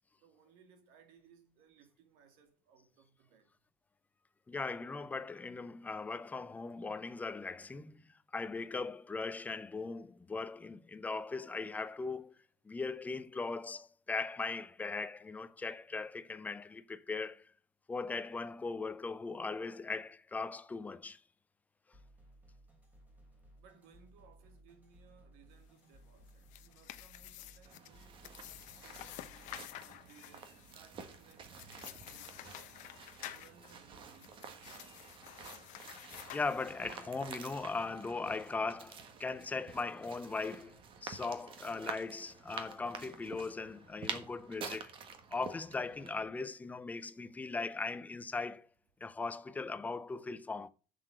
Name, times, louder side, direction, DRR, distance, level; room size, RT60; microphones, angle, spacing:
voice 1, 0.2-3.5 23.6-32.9 33.3-35.1 43.2-43.3 46.9-47.6, right 7 dB, 70° right, 2.3 m, -64 dB
voice 2, 4.5-12.4 12.6-17.5 17.9-21.2 36.0-44.9 45.3-48.7 49.0-50.7, left 4 dB, 10° left, 0.4 m, -39 dB
sound 1, 21.9-29.6, right 1 dB, 10° right, 3.2 m, -61 dB
sound 2, 26.2-37.1, left 15 dB, 50° left, 0.7 m, -51 dB
sound 3, 27.6-46.2, right 6 dB, 30° right, 1.4 m, -49 dB
7.5 x 6.7 x 7.6 m
cardioid pair, 175°, 16 cm